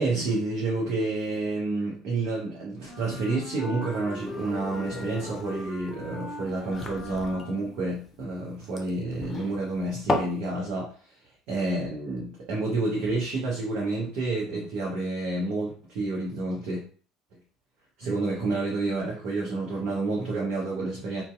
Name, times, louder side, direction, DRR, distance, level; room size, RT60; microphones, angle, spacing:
voice 1, 0.0-10.9 11.5-16.8 18.0-21.2, right 2 dB, 60° right, -4 dB, 0.8 m, -29 dB
Wind instrument woodwind instrument, 2.8-7.9, left 1 dB, ahead, 1.1 m, -41 dB
sound 1, 3.9-10.4, left 2 dB, 25° left, 0.5 m, -35 dB
2.6 x 2.1 x 2.3 m, 0.41 s
hypercardioid pair, 65°, 0 cm